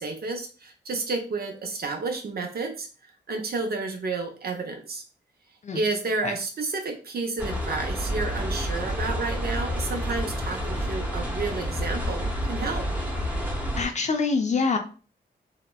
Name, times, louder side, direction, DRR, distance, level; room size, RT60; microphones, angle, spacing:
voice 1, 0.0-2.9 3.3-5.0 5.7-12.8, right 3 dB, 60° right, 4 dB, 0.6 m, -31 dB
sound 1, 7.4-13.9, equal, 10° right, 0.8 m, -29 dB
voice 2, 13.8-14.8, left 4 dB, 40° left, 5 dB, 0.4 m, -25 dB
2.8 x 2.0 x 2.2 m, 0.37 s
cardioid pair, 60°, 18 cm